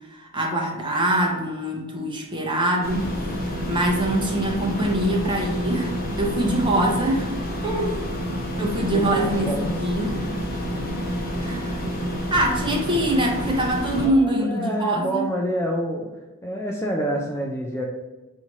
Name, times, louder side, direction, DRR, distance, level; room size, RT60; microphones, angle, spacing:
voice 1, 0.0-3.2 3.7-7.3 7.6-8.1 8.6-9.5 9.8-10.2 11.4-11.7 12.3-15.2, right 1 dB, 20° right, -1 dB, 0.8 m, -24 dB
sound 1, 2.8-14.1, equal, 45° left, 0.9 m, -29 dB
voice 2, 8.9-9.8 14.0-16.1 16.4-17.9, equal, 10° left, 0 dB, 0.3 m, -27 dB
4.8 x 2.7 x 3.0 m, 1.1 s
head